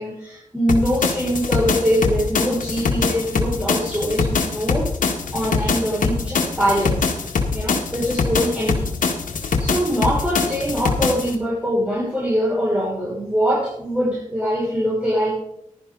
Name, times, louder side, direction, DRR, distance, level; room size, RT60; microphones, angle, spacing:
voice 1, 0.0-4.9 5.3-7.1 7.5-8.9 9.6-15.3, equal, 10° right, -7 dB, 6.4 m, -23 dB
sound 1, 0.7-11.3, left 4 dB, 85° left, 1.8 m, -23 dB
14.5 x 11.5 x 4.1 m, 0.78 s
cardioid pair, 50°, 13 cm